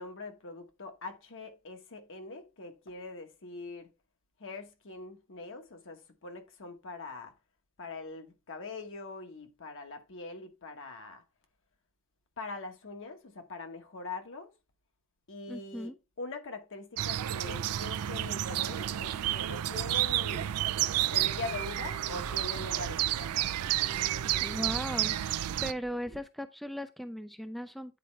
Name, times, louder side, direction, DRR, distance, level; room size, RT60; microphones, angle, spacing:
voice 1, 0.0-3.9 4.4-7.3 7.8-11.2 12.4-14.5 15.3-20.5 21.1-23.5, left 3 dB, 60° left, 1.1 m, -43 dB
voice 2, 15.5-15.9 24.4-25.2 25.6-28.0, equal, ahead, 0.3 m, -37 dB
sound 1, 17.0-25.7, right 12 dB, 85° right, 0.4 m, -31 dB
sound 2, 21.2-26.2, right 1 dB, 35° right, 0.7 m, -48 dB
9.4 x 4.3 x 3.1 m
head